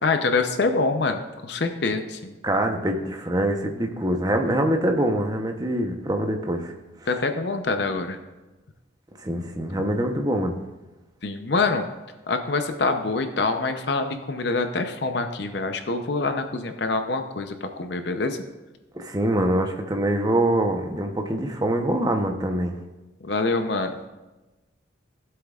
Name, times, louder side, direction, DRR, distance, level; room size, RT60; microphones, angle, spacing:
voice 1, 0.0-2.3 7.1-8.2 9.7-9.8 11.2-11.9 12.3-18.4 23.2-24.0, left 3 dB, 60° left, 6 dB, 0.7 m, -25 dB
voice 2, 2.4-6.7 9.2-10.6 18.9-22.7, right 1 dB, 20° right, 4 dB, 0.8 m, -24 dB
16.5 x 7.8 x 2.4 m, 1.1 s
head